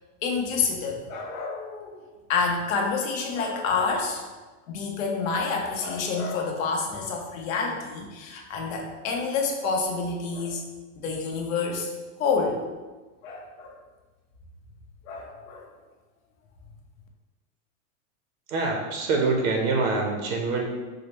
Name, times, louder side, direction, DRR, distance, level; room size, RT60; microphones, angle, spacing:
voice 1, 0.2-1.9 2.3-4.2 4.7-10.6 11.0-11.9 12.2-12.6 13.2-13.8 15.0-15.7, left 4 dB, 80° left, 1 dB, 0.8 m, -28 dB
voice 2, 18.5-20.7, right 3 dB, 75° right, 1 dB, 0.7 m, -25 dB
4.8 x 2.1 x 3.0 m, 1.3 s
supercardioid pair, 170°, 40 cm